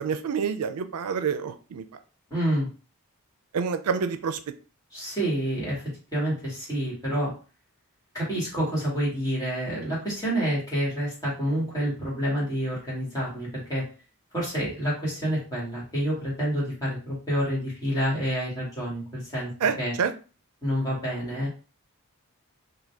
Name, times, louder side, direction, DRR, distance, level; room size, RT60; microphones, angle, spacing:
voice 1, 0.0-1.8 3.5-4.4 19.6-20.1, right 6 dB, 85° right, 10 dB, 0.4 m, -27 dB
voice 2, 2.3-2.7 4.9-5.8 6.1-7.3 8.1-13.8 14.3-19.5 19.8-19.9 20.6-21.5, equal, 15° left, -6 dB, 2.2 m, -28 dB
4.0 x 2.8 x 3.5 m, 0.36 s
head